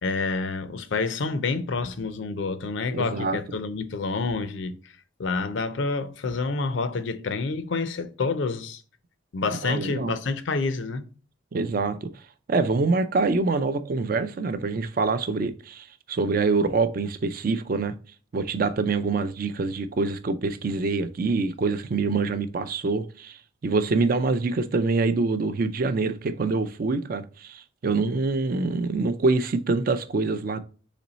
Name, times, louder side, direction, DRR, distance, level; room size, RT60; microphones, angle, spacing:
voice 1, 0.0-4.9 5.2-8.8 9.3-11.1, left 4 dB, 65° left, 0.5 m, -28 dB
voice 2, 2.9-3.4 9.6-10.1 11.5-12.1 12.5-17.9 18.3-30.6, right 3 dB, 45° right, 0.4 m, -25 dB
4.2 x 3.0 x 3.9 m
head